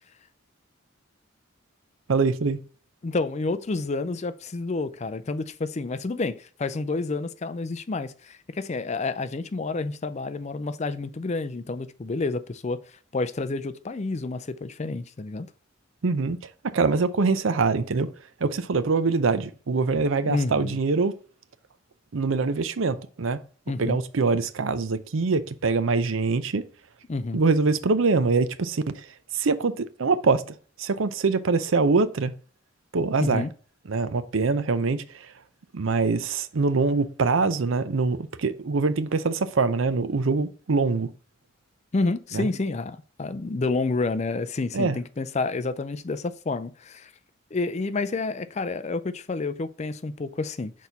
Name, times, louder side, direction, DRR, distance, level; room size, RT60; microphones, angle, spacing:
voice 1, 2.1-2.6 16.0-16.4 16.6-18.1 18.4-21.2 22.1-23.4 23.8-26.7 27.3-29.0 29.3-30.4 30.8-32.3 32.9-33.4 33.9-35.3 35.7-41.1 42.3-42.5 44.7-45.0, right 4 dB, 70° right, 0.6 m, -24 dB
voice 2, 3.0-12.8 13.1-15.5 20.3-20.8 23.7-24.0 27.1-27.4 33.2-33.5 41.9-47.1 47.5-50.7, left 3 dB, 35° left, 0.4 m, -29 dB
6.3 x 4.2 x 4.0 m
head